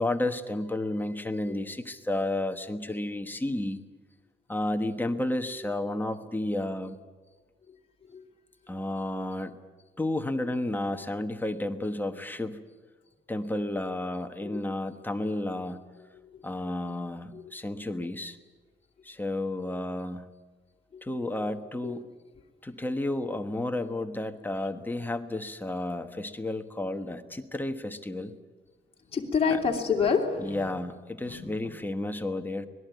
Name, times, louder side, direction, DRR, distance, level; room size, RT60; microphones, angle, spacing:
voice 1, 0.0-3.8 4.5-7.0 8.7-9.6 10.0-12.6 13.3-15.8 16.4-18.4 19.0-20.3 21.0-22.1 22.6-28.3 29.5-29.6 30.4-32.7, left 1 dB, 10° left, 6 dB, 1.2 m, -32 dB
voice 2, 29.1-30.6 31.2-31.5, left 5 dB, 30° left, 0 dB, 3.2 m, -27 dB
25.0 x 19.5 x 9.3 m, 1.3 s
wide cardioid pair, 170°, 20 cm